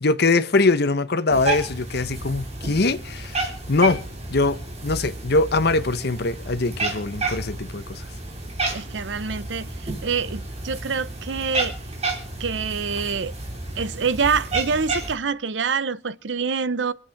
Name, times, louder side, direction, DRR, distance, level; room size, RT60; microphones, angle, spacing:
voice 1, 0.0-4.0 4.3-8.0, left 3 dB, 60° left, 1.0 m, -22 dB
Cat, 1.3-15.2, right 2 dB, 35° right, 3.0 m, -31 dB
voice 2, 8.7-11.7 12.4-13.3 13.8-16.9, right 5 dB, 80° right, 0.7 m, -26 dB
25.0 x 8.4 x 5.8 m
head